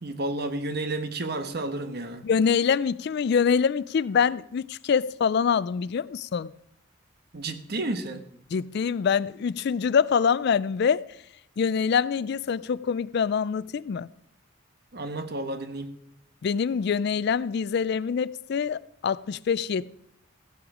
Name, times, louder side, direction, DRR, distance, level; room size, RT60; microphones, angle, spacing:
voice 1, 0.0-2.3 7.3-8.2 14.9-15.9, right 2 dB, 55° right, 1.2 m, -31 dB
voice 2, 2.2-6.5 8.5-11.0 11.6-14.1 16.4-20.0, left 6 dB, 55° left, 0.4 m, -25 dB
15.5 x 9.1 x 4.9 m
head